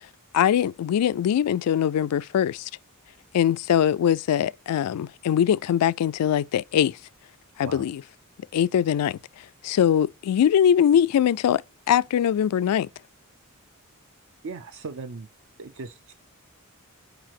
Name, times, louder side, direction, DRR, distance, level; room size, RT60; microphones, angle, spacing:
voice 1, 0.3-2.7 3.3-7.0 7.6-8.0 8.5-9.2 9.6-11.6 11.9-12.9, left 9 dB, 85° left, 0.3 m, -22 dB
voice 2, 14.4-15.3 15.6-16.1, right 4 dB, 60° right, 0.5 m, -38 dB
5.0 x 4.7 x 5.8 m
head